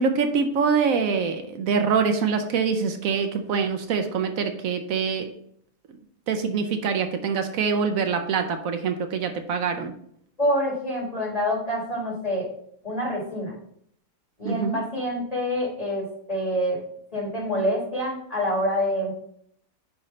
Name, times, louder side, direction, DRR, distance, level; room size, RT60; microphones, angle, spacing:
voice 1, 0.0-5.3 6.3-9.9 14.4-14.8, right 5 dB, 75° right, 6 dB, 1.0 m, -24 dB
voice 2, 10.4-12.5 12.8-13.5 14.4-16.8 17.1-19.1, equal, 25° left, -3 dB, 2.0 m, -26 dB
9.5 x 3.2 x 3.8 m, 0.67 s
omnidirectional pair, 1.5 m